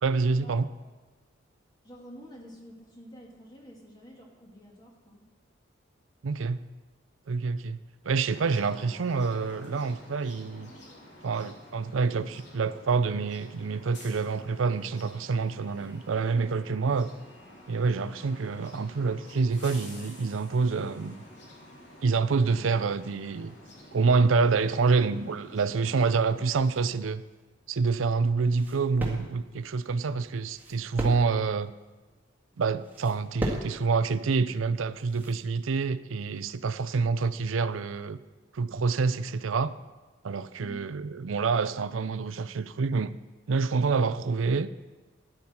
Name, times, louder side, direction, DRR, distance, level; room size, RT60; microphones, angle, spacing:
voice 1, 0.0-0.7 6.2-6.6 7.3-7.8 8.0-10.7 11.2-17.1 17.7-21.2 22.0-23.5 23.9-27.2 27.7-31.7 32.6-38.2 38.5-39.7 40.2-43.1 43.5-44.7, right 4 dB, 85° right, 0.5 m, -27 dB
voice 2, 1.8-5.3 40.6-40.8, equal, 20° left, 2.2 m, -48 dB
sound 1, 8.3-27.0, left 1 dB, 60° left, 2.8 m, -50 dB
sound 2, 27.2-35.4, equal, 10° right, 1.9 m, -39 dB
13.0 x 10.5 x 4.4 m
head